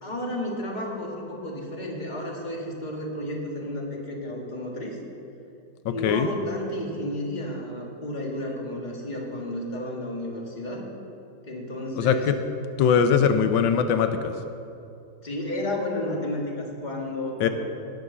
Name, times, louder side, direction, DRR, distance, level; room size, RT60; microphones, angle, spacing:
voice 1, 0.0-5.0 5.9-10.9 11.4-12.3 15.2-17.5, left 1 dB, 25° left, -1 dB, 1.9 m, -32 dB
voice 2, 5.8-6.3 12.0-12.4 12.8-14.3 17.4-17.5, left 7 dB, 85° left, 8 dB, 1.4 m, -21 dB
17.5 x 6.5 x 6.8 m, 2.6 s
omnidirectional pair, 2.0 m